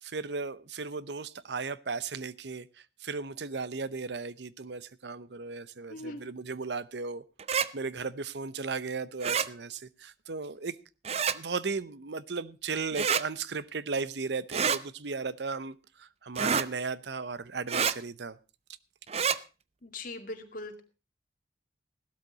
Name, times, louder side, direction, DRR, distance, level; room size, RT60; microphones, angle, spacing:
voice 1, 0.0-7.2 7.7-10.8 11.3-18.4, right 4 dB, 65° right, 0.7 m, -36 dB
voice 2, 5.9-6.2 19.8-20.8, left 2 dB, 50° left, 2.3 m, -40 dB
sound 1, 7.4-7.7 9.2-9.5 11.0-11.4 12.9-13.2 14.5-14.8 16.3-16.7 17.7-17.9 19.1-19.4, right 6 dB, 35° right, 0.6 m, -27 dB
16.0 x 12.5 x 3.9 m
head